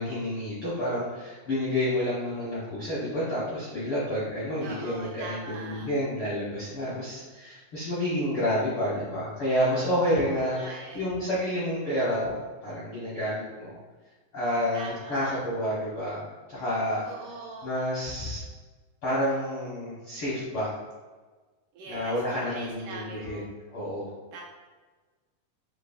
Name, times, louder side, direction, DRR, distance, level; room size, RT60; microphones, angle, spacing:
voice 1, 0.0-13.8 14.3-16.2 16.5-17.0 17.6-18.4 19.0-20.7 21.9-24.1, equal, 80° left, -8 dB, 1.2 m, -29 dB
voice 2, 4.6-5.9 10.3-11.0 14.7-15.4 17.0-17.7 21.7-22.1 22.4-23.5 24.3-24.4, right 3 dB, 85° right, -2 dB, 1.7 m, -41 dB
7.1 x 2.8 x 2.3 m, 1.3 s
omnidirectional pair, 4.0 m